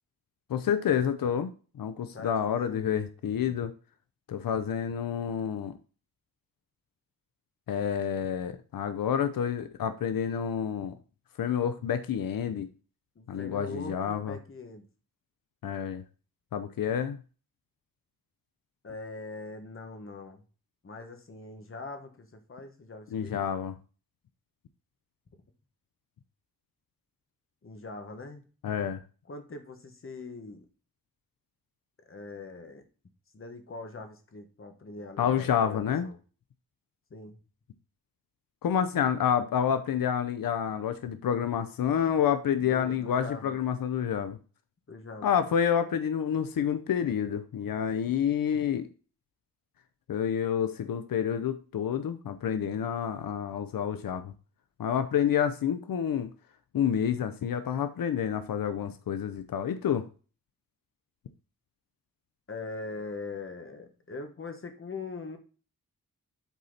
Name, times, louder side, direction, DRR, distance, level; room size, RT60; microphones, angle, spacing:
voice 1, 0.5-1.5 1.8-3.7 4.3-5.7 7.7-10.9 11.4-12.7 13.3-14.4 15.6-16.0 16.5-17.2 23.1-23.7 28.6-29.0 35.2-36.1 38.6-44.4 45.2-48.9 50.1-54.3 54.8-56.3 56.7-60.1, left 8 dB, 90° left, 10 dB, 0.7 m, -28 dB
voice 2, 2.1-3.0 13.1-14.9 18.8-20.4 20.8-23.3 27.6-28.4 29.3-30.7 32.1-32.8 33.3-36.2 37.1-37.4 42.6-43.6 44.9-45.4 62.5-65.4, left 3 dB, 40° left, 6 dB, 1.3 m, -42 dB
8.2 x 4.3 x 4.0 m, 0.36 s
wide cardioid pair, 125°, 33 cm